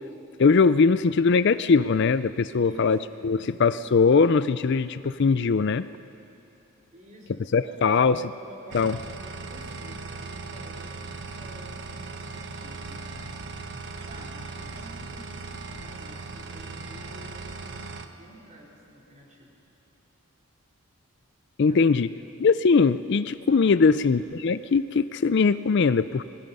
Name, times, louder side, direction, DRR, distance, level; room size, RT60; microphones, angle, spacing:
voice 1, 0.4-3.0 3.2-5.9 7.5-8.2 8.7-9.0 21.6-22.1 22.4-26.2, left 4 dB, 50° left, 14 dB, 0.4 m, -21 dB
voice 2, 2.5-3.5 6.9-13.3 14.1-19.5 21.7-22.0 23.5-23.8, right 1 dB, 35° right, -3 dB, 4.0 m, -49 dB
sound 1, 8.7-18.1, right 3 dB, 50° right, 1.1 m, -38 dB
29.0 x 20.5 x 5.5 m, 2.9 s
head